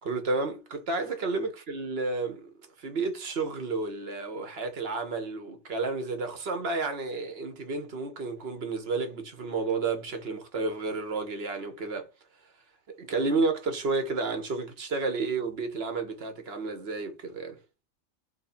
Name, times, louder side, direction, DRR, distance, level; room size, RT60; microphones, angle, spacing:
voice 1, 0.0-2.5 2.8-12.1 13.0-17.6, right 3 dB, 55° right, 1.0 m, -31 dB
3.1 x 2.6 x 4.2 m
omnidirectional pair, 1.4 m